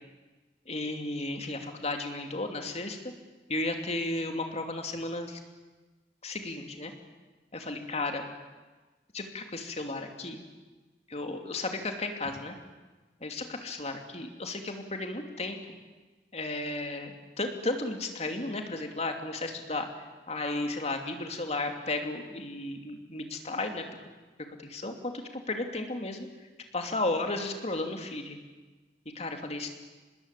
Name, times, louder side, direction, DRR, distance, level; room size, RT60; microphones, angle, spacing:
voice 1, 0.7-3.0 3.5-5.4 6.2-6.9 7.5-8.2 9.1-10.4 11.1-12.5 13.2-15.6 16.3-19.9 20.3-23.8 24.6-26.3 26.7-28.4 29.1-29.7, left 2 dB, 40° left, 5 dB, 2.8 m, -34 dB
26.0 x 20.5 x 8.5 m, 1.3 s
head